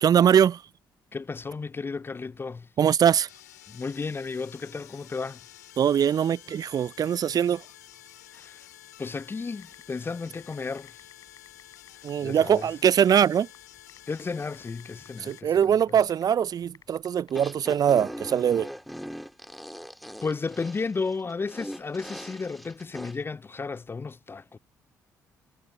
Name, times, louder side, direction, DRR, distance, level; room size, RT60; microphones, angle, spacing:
voice 1, 0.0-0.6 2.8-3.3 5.8-7.6 12.0-13.5 15.2-18.7, right 8 dB, 45° right, 0.5 m, -22 dB
voice 2, 1.1-2.7 3.7-5.4 8.3-8.7 9.0-11.0 12.2-12.7 14.1-16.0 20.2-24.6, left 4 dB, 25° left, 0.4 m, -33 dB
sound 1, 3.3-15.4, left 13 dB, 85° left, 3.6 m, -50 dB
sound 2, 9.6-18.0, left 7 dB, 45° left, 4.3 m, -56 dB
sound 3, 17.3-23.1, equal, ahead, 3.5 m, -40 dB
figure-of-eight pair, 45°, 9 cm